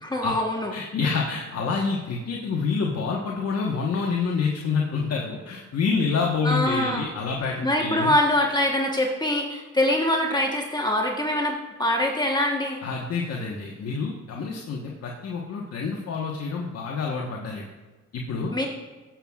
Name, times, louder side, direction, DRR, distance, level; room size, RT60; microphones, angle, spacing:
voice 1, 0.0-0.7 6.4-7.0 7.6-12.8 18.5-18.7, left 1 dB, 15° left, 0 dB, 1.2 m, -24 dB
voice 2, 0.7-8.1 12.8-17.7 18.1-18.5, left 5 dB, 55° left, -1 dB, 1.3 m, -27 dB
15.0 x 7.2 x 2.4 m, 1.3 s
cardioid pair, 90°, 30 cm